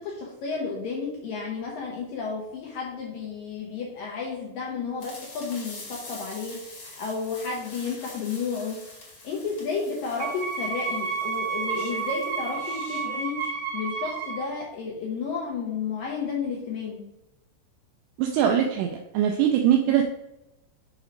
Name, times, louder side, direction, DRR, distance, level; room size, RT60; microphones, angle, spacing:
voice 1, 0.0-8.8 9.2-17.0 19.9-20.0, left 5 dB, 80° left, -2 dB, 2.0 m, -32 dB
sound 1, 5.0-13.5, left 2 dB, 45° left, 1.7 m, -45 dB
Wind instrument woodwind instrument, 10.2-14.5, right 5 dB, 65° right, 3.2 m, -31 dB
voice 2, 18.2-20.1, right 9 dB, 85° right, 3 dB, 2.5 m, -22 dB
7.0 x 3.0 x 5.1 m, 0.93 s
omnidirectional pair, 5.2 m